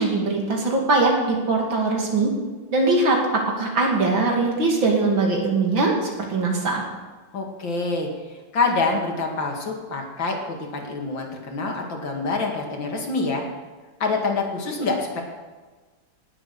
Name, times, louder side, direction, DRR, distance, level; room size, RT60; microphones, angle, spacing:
voice 1, 0.0-2.3 2.7-6.8, right 3 dB, 75° right, 0 dB, 3.3 m, -21 dB
voice 2, 7.3-8.1 8.5-13.4 14.0-15.2, left 3 dB, 70° left, 1 dB, 2.8 m, -26 dB
18.5 x 7.7 x 6.7 m, 1.3 s
omnidirectional pair, 2.1 m